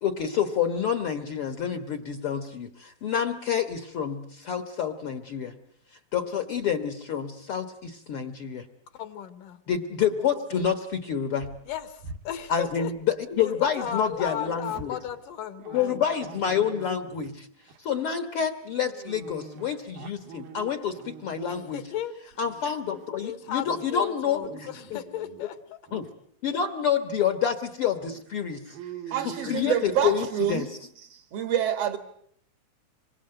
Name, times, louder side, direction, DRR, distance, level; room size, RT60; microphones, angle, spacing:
voice 1, 0.0-5.5 6.1-8.6 9.7-11.5 12.5-15.0 15.7-17.5 17.8-21.8 22.4-24.7 25.9-26.1 26.4-28.8 29.2-30.7, left 8 dB, 55° left, 1.7 m, -28 dB
voice 2, 8.9-9.6 11.7-12.9 13.4-16.0 21.5-22.4 23.2-25.8, left 10 dB, 75° left, 2.8 m, -35 dB
Dog, 11.4-13.7 14.0-17.3 17.7-18.0 18.8-21.9 22.3-23.0 23.4-23.8 24.2-25.5 25.9-26.1 26.7-26.8 27.2-27.3 27.9-30.2, right 6 dB, 80° right, 3.6 m, -45 dB
voice 3, 29.1-30.7 31.1-32.0, right 9 dB, 55° right, 2.1 m, -27 dB
27.0 x 24.0 x 7.8 m
omnidirectional pair, 4.0 m